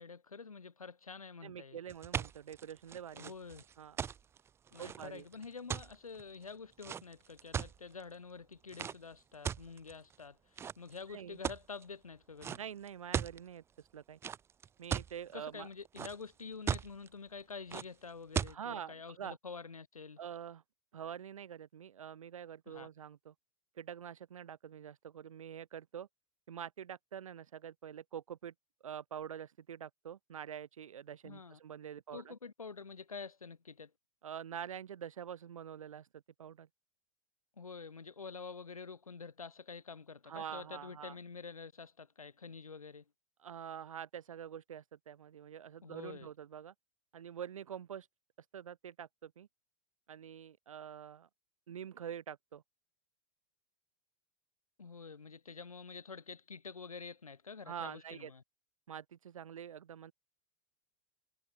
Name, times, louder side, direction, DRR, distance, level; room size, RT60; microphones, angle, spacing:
voice 1, 0.0-1.8 3.1-3.6 4.7-12.6 15.3-20.2 22.7-22.9 31.2-31.6 32.1-33.9 37.6-43.0 45.8-46.3 54.8-58.4, left 5 dB, 85° left, 0.8 m, -48 dB
voice 2, 1.4-3.3 3.8-4.0 4.8-5.2 11.1-11.4 12.6-14.2 14.8-15.7 18.5-19.4 20.2-20.6 20.9-23.3 23.8-26.1 26.5-28.5 28.8-32.3 34.2-36.1 36.4-36.7 40.2-41.2 43.4-46.7 47.1-48.1 48.5-49.5 50.1-51.3 51.7-52.6 57.7-58.3 58.9-60.1, right 9 dB, 75° right, 0.7 m, -46 dB
sound 1, 1.9-8.0 8.7-9.0 9.4-10.1 10.6-11.0 11.4-11.8 12.4-12.6 12.9-13.4 14.2-15.1 15.6-16.3 16.7-17.1 17.7-17.8 18.3-18.5, right 8 dB, 15° right, 0.3 m, -37 dB
figure-of-eight pair, 90°, 18 cm